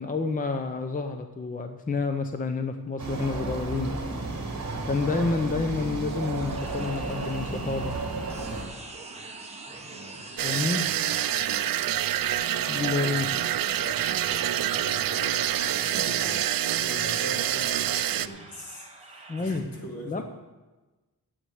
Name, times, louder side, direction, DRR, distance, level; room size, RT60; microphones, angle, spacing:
voice 1, 0.0-4.0 4.8-8.0 10.4-10.8 12.7-13.3 19.3-19.6 20.1-20.2, left 4 dB, 25° left, 7 dB, 0.6 m, -29 dB
sound 1, 3.0-8.6, right 3 dB, 45° right, 2.6 m, -33 dB
sound 2, 5.9-19.6, right 2 dB, 15° right, 1.2 m, -46 dB
voice 2, 9.8-10.2 11.2-11.7 12.4-20.2, left 1 dB, 65° left, -1 dB, 2.8 m, -42 dB
sound 3, 10.4-18.3, right 11 dB, 65° right, 0.5 m, -27 dB
9.5 x 8.0 x 7.9 m, 1.2 s
wide cardioid pair, 170°, 37 cm